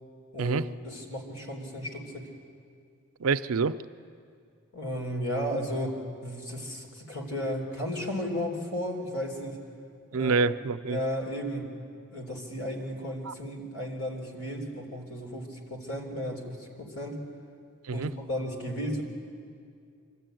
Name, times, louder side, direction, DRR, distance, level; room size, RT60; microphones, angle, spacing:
voice 1, 0.8-2.3 4.7-9.6 10.1-10.4 10.9-11.7 12.1-17.2 17.9-19.0, equal, 85° left, 1 dB, 3.7 m, -34 dB
voice 2, 3.2-3.8 10.1-11.0 13.2-13.3 17.9-18.1, right 4 dB, 85° right, 12 dB, 0.6 m, -26 dB
25.5 x 13.5 x 9.2 m, 2.3 s
head